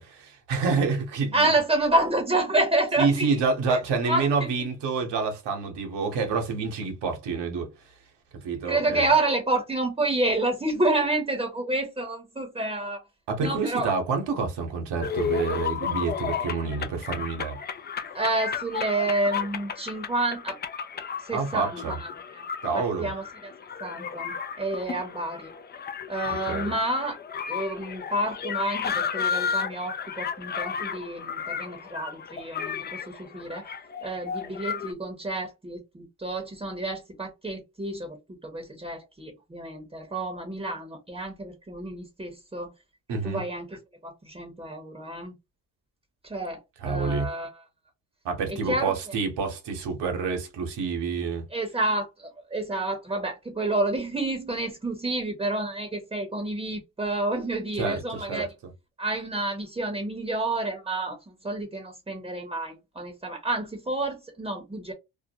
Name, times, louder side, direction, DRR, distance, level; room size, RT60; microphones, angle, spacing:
voice 1, 0.0-1.5 3.0-7.7 8.4-9.0 13.3-17.6 21.3-22.0 22.6-23.1 26.5-26.7 43.1-43.4 46.8-47.3 48.2-51.4 57.8-58.5, right 4 dB, 70° right, 1.1 m, -28 dB
voice 2, 1.3-3.3 3.7-4.5 8.6-13.0 13.4-13.9 18.1-20.6 21.2-22.4 22.7-23.5 23.8-25.5 26.1-27.2 27.5-33.7 34.0-42.7 43.2-45.3 46.2-47.6 48.5-48.9 51.5-58.5 59.0-64.9, right 2 dB, 15° right, 0.8 m, -29 dB
sound 1, 15.0-34.9, left 7 dB, 25° left, 0.3 m, -33 dB
2.5 x 2.1 x 2.7 m
supercardioid pair, 70°, 43 cm